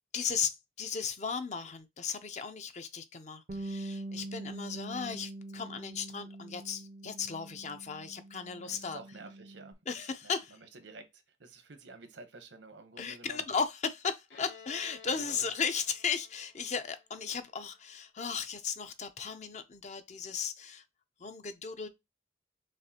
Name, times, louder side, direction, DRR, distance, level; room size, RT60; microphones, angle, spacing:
voice 1, 0.1-9.0 9.9-10.5 13.0-20.8 21.2-21.9, left 6 dB, 40° left, 0.5 m, -36 dB
Bass guitar, 3.5-9.7, right 1 dB, 45° right, 0.5 m, -44 dB
voice 2, 8.6-13.4 15.1-15.5, right 3 dB, 85° right, 0.9 m, -51 dB
Bowed string instrument, 14.3-17.8, left 6 dB, 80° left, 1.8 m, -55 dB
6.4 x 2.4 x 2.8 m
head